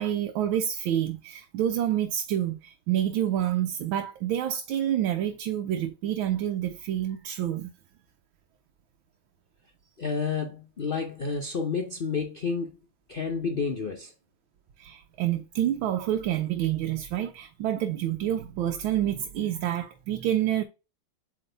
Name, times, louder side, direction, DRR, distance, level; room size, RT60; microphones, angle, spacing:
voice 1, 0.0-7.7 14.8-20.6, right 11 dB, 90° right, 1.5 m, -28 dB
voice 2, 10.0-12.8 13.1-14.1, left 5 dB, 80° left, 0.5 m, -30 dB
7.9 x 3.6 x 3.3 m
omnidirectional pair, 2.2 m